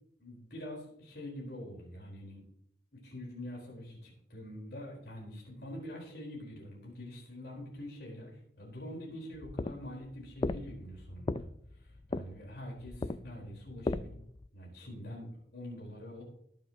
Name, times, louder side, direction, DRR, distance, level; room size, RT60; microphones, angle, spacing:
voice 1, 0.2-2.4 2.9-11.5 11.8-14.1 14.5-16.2, left 1 dB, 60° left, -3 dB, 4.5 m, -45 dB
sound 1, 9.4-14.5, left 2 dB, 25° left, 0.4 m, -37 dB
20.5 x 7.6 x 3.0 m, 0.70 s
head